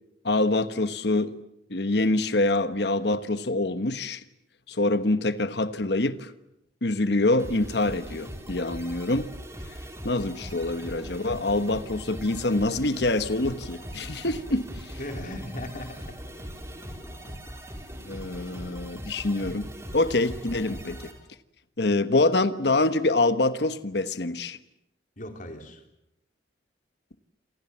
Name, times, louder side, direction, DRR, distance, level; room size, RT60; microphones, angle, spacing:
voice 1, 0.2-1.3 1.7-4.2 4.7-6.3 6.8-9.3 10.0-14.7 18.0-19.7 19.9-21.0 21.8-24.6, left 2 dB, 65° left, 1.2 m, -25 dB
sound 1, 7.4-21.1, equal, 15° right, 4.4 m, -40 dB
Aircraft, 11.3-17.3, left 2 dB, 85° left, 6.8 m, -54 dB
voice 2, 15.0-16.2 17.3-17.4 25.2-25.8, left 1 dB, 45° left, 4.0 m, -38 dB
28.5 x 27.0 x 7.4 m
head